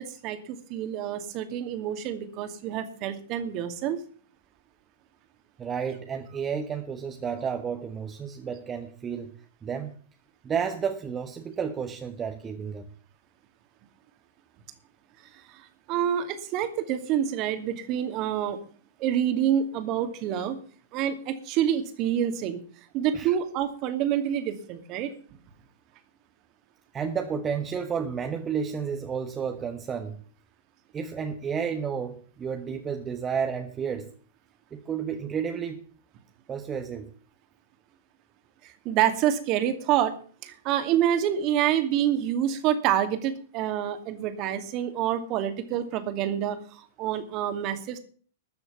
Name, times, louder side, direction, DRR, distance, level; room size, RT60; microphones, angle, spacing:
voice 1, 0.0-4.0 15.5-18.6 19.0-20.6 20.9-22.6 22.9-25.1 38.6-40.1 40.4-48.0, right 10 dB, 40° right, 8 dB, 2.4 m, -27 dB
voice 2, 5.6-9.3 9.6-9.9 10.4-12.9 23.1-23.4 26.9-30.2 30.9-34.1 34.7-35.8 36.5-37.1, right 7 dB, 20° right, 5 dB, 1.4 m, -31 dB
13.5 x 6.9 x 8.4 m, 0.44 s
figure-of-eight pair, 100°, 0 cm